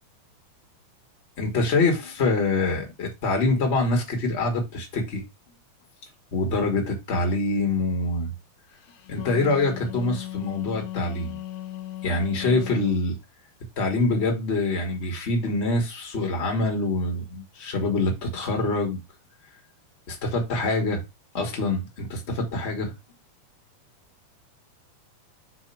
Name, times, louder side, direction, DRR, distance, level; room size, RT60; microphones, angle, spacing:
voice 1, 1.4-5.2 6.3-8.3 9.1-11.4 12.0-13.1 13.8-19.0 20.1-21.0 21.3-22.9, left 2 dB, 25° left, 1.4 m, -25 dB
Wind instrument woodwind instrument, 8.9-13.1, left 14 dB, 80° left, 2.5 m, -37 dB
4.6 x 4.3 x 5.7 m
omnidirectional pair, 4.2 m